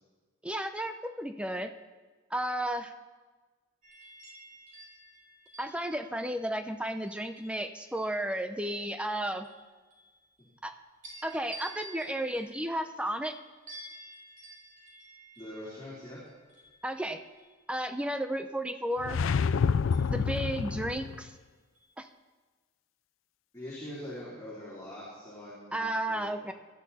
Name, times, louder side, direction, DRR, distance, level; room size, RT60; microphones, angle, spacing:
voice 1, 0.4-1.7 2.3-2.9 5.6-9.5 10.6-10.7 11.2-13.3 16.8-17.2 17.7-19.2 20.1-21.3 22.0-22.1 25.7-26.5, right 1 dB, 5° right, 8 dB, 0.6 m, -33 dB
sound 1, 3.8-8.2 8.7-10.7 11.0-18.0 19.9-21.3 21.7-22.0, right 2 dB, 35° right, 5.7 m, -52 dB
voice 2, 15.4-16.2 23.5-26.4, left 1 dB, 15° left, -9 dB, 3.6 m, -43 dB
sound 2, 19.0-21.2, left 5 dB, 70° left, 0.4 m, -28 dB
19.5 x 12.5 x 4.2 m, 1.3 s
head